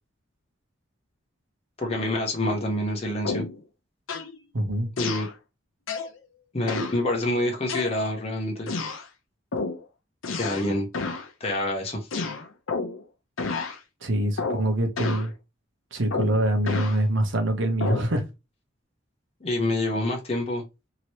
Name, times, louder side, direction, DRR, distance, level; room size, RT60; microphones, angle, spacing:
voice 1, 1.8-3.4 5.0-5.3 6.5-8.7 10.3-10.9 11.4-12.1 19.4-20.6, left 1 dB, 30° left, 0.8 m, -27 dB
sound 1, 3.2-3.6 4.1-4.4 5.0-5.3 5.9-6.2 6.7-7.0 7.7-8.2 8.7-9.1 9.5-9.8 10.2-10.7 10.9-11.3 12.1-13.0 13.4-13.8 14.4-14.7 15.0-15.3 16.1-17.0 17.8-18.1, left 4 dB, 90° left, 0.7 m, -30 dB
voice 2, 4.5-4.9 14.0-15.3 15.9-18.2, right 1 dB, 70° right, 0.9 m, -24 dB
2.9 x 2.9 x 3.0 m
head